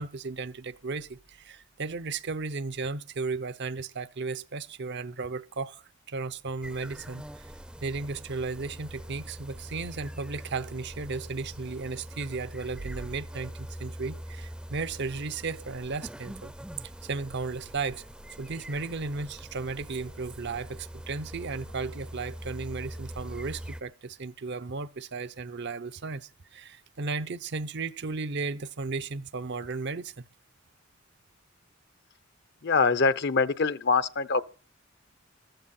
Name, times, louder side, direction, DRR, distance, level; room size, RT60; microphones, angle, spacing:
voice 1, 0.0-7.5 7.8-16.5 17.0-18.1 18.4-30.1, right 4 dB, 60° right, 0.7 m, -35 dB
sound 1, 6.6-23.8, equal, 5° right, 0.6 m, -43 dB
voice 2, 32.6-34.4, left 4 dB, 55° left, 0.8 m, -24 dB
14.5 x 14.0 x 4.3 m
head